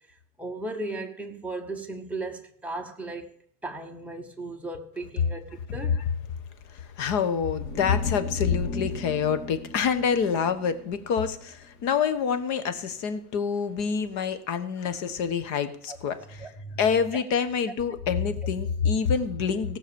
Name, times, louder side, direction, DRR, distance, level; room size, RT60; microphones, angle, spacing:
voice 1, 0.1-3.3 3.6-6.0 15.9-16.0 16.4-16.8, right 2 dB, 5° right, 1.0 m, -36 dB
voice 2, 6.7-16.5 16.8-19.8, left 6 dB, 45° left, 1.3 m, -27 dB
sound 1, 7.6-11.8, left 2 dB, 25° left, 3.0 m, -38 dB
17.0 x 6.1 x 7.0 m
supercardioid pair, 160°, 38 cm